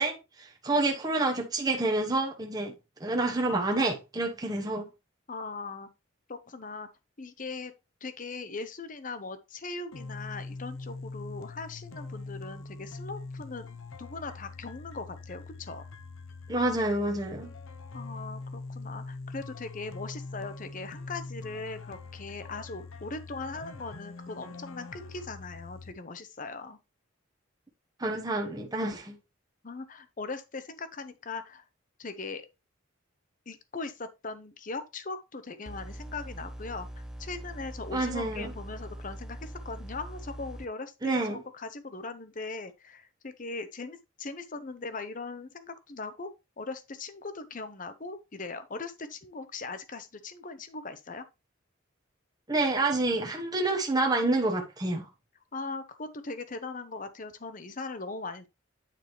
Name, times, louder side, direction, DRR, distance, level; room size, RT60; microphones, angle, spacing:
voice 1, 0.0-2.7 3.0-4.9 16.5-17.5 28.0-29.2 37.9-38.5 41.0-41.4 52.5-55.0, right 2 dB, 20° right, 1.1 m, -28 dB
voice 2, 5.3-5.9 6.3-6.9 7.2-7.7 8.0-15.8 17.9-26.8 29.6-31.6 32.0-32.4 33.5-46.3 46.6-51.3 55.5-58.5, left 3 dB, 40° left, 0.8 m, -40 dB
sound 1, 9.9-25.9, left 3 dB, 80° left, 0.8 m, -43 dB
sound 2, 35.6-40.6, right 1 dB, 5° right, 0.4 m, -42 dB
9.3 x 4.8 x 3.2 m
head